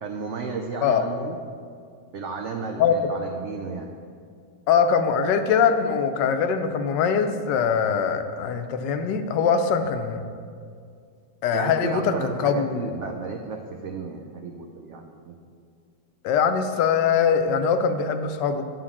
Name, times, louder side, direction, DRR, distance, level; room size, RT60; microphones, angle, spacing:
voice 1, 0.0-1.4 2.1-3.9 11.5-15.4, right 4 dB, 80° right, 3 dB, 0.6 m, -33 dB
voice 2, 4.7-10.2 11.4-12.8 16.2-18.6, left 6 dB, 85° left, 8 dB, 1.2 m, -22 dB
9.0 x 3.7 x 7.1 m, 2.2 s
omnidirectional pair, 1.9 m